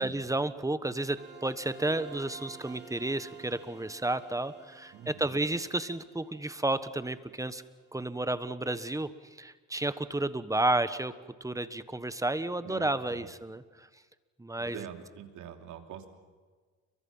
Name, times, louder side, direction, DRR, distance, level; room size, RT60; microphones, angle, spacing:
voice 1, 0.0-7.6 7.9-9.1 9.4-11.1 11.4-13.9 14.4-14.8, right 2 dB, 10° right, 13 dB, 1.3 m, -31 dB
sound 1, 1.2-7.8, right 5 dB, 35° right, 6.2 m, -52 dB
voice 2, 4.9-5.4 12.6-13.3 14.6-16.1, right 9 dB, 80° right, 5 dB, 3.1 m, -45 dB
30.0 x 23.5 x 5.6 m, 1.4 s
cardioid pair, 90°, 30 cm